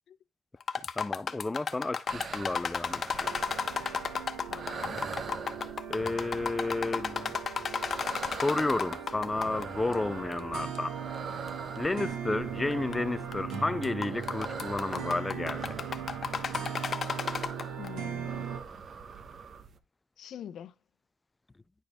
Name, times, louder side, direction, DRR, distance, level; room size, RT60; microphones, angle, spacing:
sound 1, 0.6-9.6 9.9-10.0 10.7-10.8 11.5-11.6 12.7-13.0 13.3-13.5 13.8-17.9, left 6 dB, 45° left, 0.9 m, -33 dB
voice 1, 1.0-3.0 5.9-7.3 8.4-10.9 11.8-15.6, left 2 dB, 20° left, 0.3 m, -31 dB
sound 2, 2.1-19.8, right 5 dB, 50° right, 1.1 m, -44 dB
sound 3, 3.2-18.6, right 7 dB, 80° right, 2.4 m, -40 dB
voice 2, 4.5-5.0 17.8-18.6 20.2-20.8, left 9 dB, 70° left, 0.7 m, -45 dB
10.5 x 5.0 x 3.5 m
cardioid pair, 90°, 0 cm